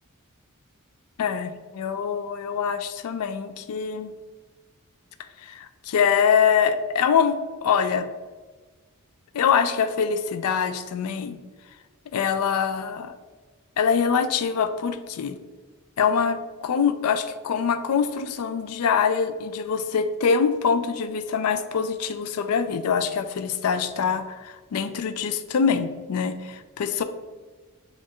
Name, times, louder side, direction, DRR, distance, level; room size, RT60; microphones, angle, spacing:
voice 1, 1.2-4.1 5.4-8.1 9.3-11.4 12.1-13.1 13.8-15.4 16.0-27.0, left 6 dB, 80° left, 11 dB, 0.4 m, -24 dB
5.1 x 2.5 x 3.6 m, 1.4 s
head